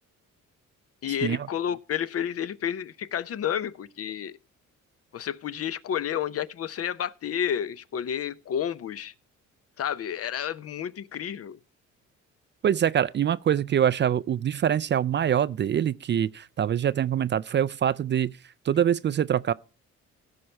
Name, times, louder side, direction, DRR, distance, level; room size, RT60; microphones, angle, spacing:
voice 1, 1.0-4.3 5.1-9.1 9.8-11.6, left 9 dB, 50° left, 0.6 m, -30 dB
voice 2, 12.6-18.3 18.7-19.5, right 9 dB, 40° right, 0.4 m, -24 dB
16.0 x 5.4 x 4.3 m
cardioid pair, 90°, 30 cm